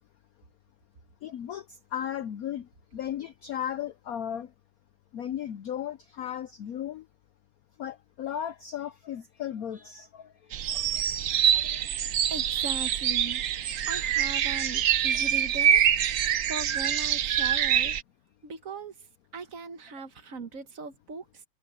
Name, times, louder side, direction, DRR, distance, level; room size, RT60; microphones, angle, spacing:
voice 1, 1.2-4.5 5.1-7.1 7.8-11.2 11.5-11.8 16.2-16.3, left 10 dB, 75° left, 0.8 m, -36 dB
sound 1, 10.5-18.0, right 9 dB, 75° right, 0.7 m, -25 dB
voice 2, 12.3-13.4 13.9-15.8 16.4-18.0 18.4-19.1 19.3-21.4, right 3 dB, 45° right, 1.5 m, -39 dB
omnidirectional pair, 2.3 m